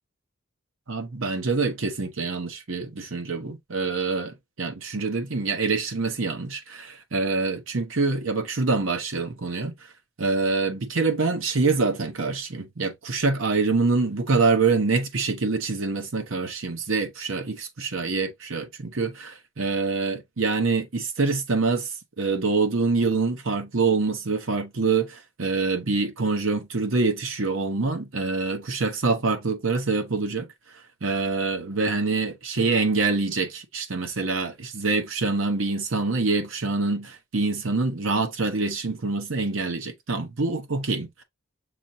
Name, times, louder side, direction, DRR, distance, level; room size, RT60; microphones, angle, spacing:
voice 1, 0.9-9.7 10.2-21.9 22.2-30.5 31.0-41.2, right 4 dB, 70° right, 0.9 m, -25 dB
6.0 x 2.9 x 2.7 m
head